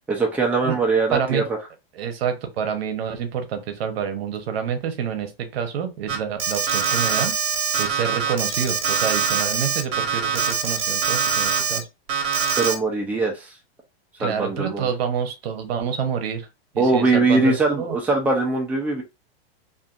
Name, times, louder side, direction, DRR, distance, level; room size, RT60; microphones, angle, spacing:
voice 1, 0.1-1.6 12.6-13.5 14.2-14.9 16.8-19.0, right 3 dB, 5° right, 0.5 m, -21 dB
voice 2, 1.1-1.5 1.9-7.3 7.8-11.9 14.2-16.5 16.7-18.0, right 7 dB, 70° right, 0.8 m, -28 dB
Alarm, 6.1-11.8 12.1-12.7, right 6 dB, 50° right, 1.2 m, -23 dB
2.6 x 2.5 x 2.4 m
hypercardioid pair, 125°, 32 cm